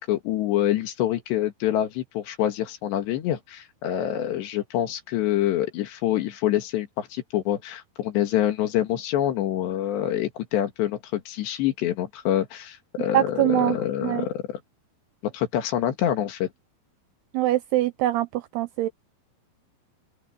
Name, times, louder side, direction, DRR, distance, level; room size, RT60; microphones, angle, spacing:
voice 1, 0.0-14.4 15.2-16.5, left 12 dB, 75° left, 3.9 m, -26 dB
voice 2, 13.1-13.8 14.0-14.3 17.3-18.9, right 14 dB, 85° right, 2.4 m, -23 dB
open air
omnidirectional pair, 5.3 m